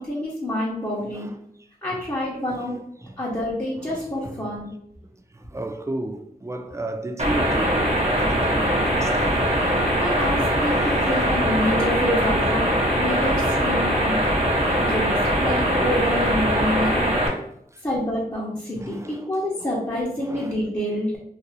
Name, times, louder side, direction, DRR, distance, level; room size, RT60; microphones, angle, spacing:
voice 1, 0.0-1.3 1.8-2.7 3.2-4.7 10.0-14.2 14.8-17.1 17.8-21.2, left 1 dB, 20° left, 0.9 m, -27 dB
voice 2, 1.0-1.4 1.9-2.0 2.5-3.2 3.8-4.5 5.3-9.9 10.2-10.4 10.7-11.2 12.8-13.2 14.4-14.9 17.3-17.5 17.7-17.8 18.7-19.3 19.6-20.6, right 1 dB, 20° right, 0.3 m, -35 dB
sound 1, 7.2-17.3, equal, 40° right, 0.8 m, -21 dB
2.6 x 2.6 x 3.9 m
wide cardioid pair, 60°, 16 cm